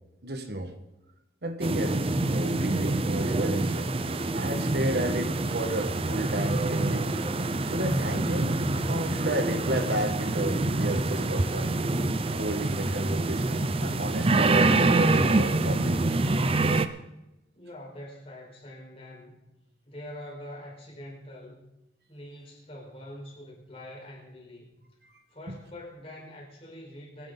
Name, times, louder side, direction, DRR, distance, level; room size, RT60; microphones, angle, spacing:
voice 1, 0.2-0.7 1.4-3.9 4.3-7.1 7.7-8.6 8.9-11.8 12.3-16.1 25.5-25.6, right 1 dB, 65° right, 6 dB, 1.6 m, -32 dB
sound 1, 1.6-16.9, right 2 dB, 35° right, 0.6 m, -26 dB
voice 2, 17.5-19.5 19.9-21.6 22.1-24.7 25.3-27.3, left 1 dB, 35° left, -2 dB, 4.7 m, -44 dB
24.0 x 10.0 x 4.0 m, 0.96 s
head